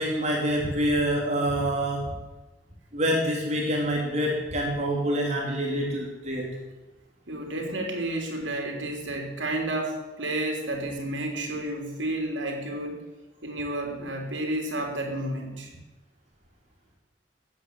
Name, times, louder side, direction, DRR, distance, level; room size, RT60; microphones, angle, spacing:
voice 1, 0.0-2.2 2.9-6.6, equal, 35° right, -1 dB, 2.7 m, -26 dB
voice 2, 7.3-13.0 13.4-15.7, right 1 dB, 75° right, 2 dB, 3.4 m, -31 dB
14.5 x 8.6 x 7.4 m, 1.1 s
head